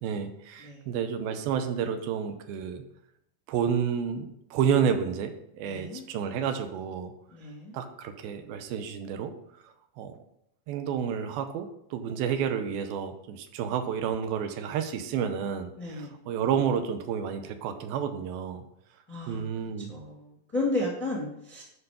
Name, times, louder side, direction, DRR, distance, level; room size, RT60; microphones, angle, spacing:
voice 1, 0.0-2.8 3.5-7.1 7.7-9.3 10.0-10.2 10.7-18.6 19.3-19.9, right 7 dB, 85° right, 8 dB, 2.6 m, -30 dB
voice 2, 5.6-6.0 7.3-7.8 15.8-16.1 19.1-19.4 19.9-21.6, left 2 dB, 5° left, -3 dB, 1.2 m, -33 dB
11.0 x 4.6 x 5.1 m, 0.77 s
omnidirectional pair, 4.3 m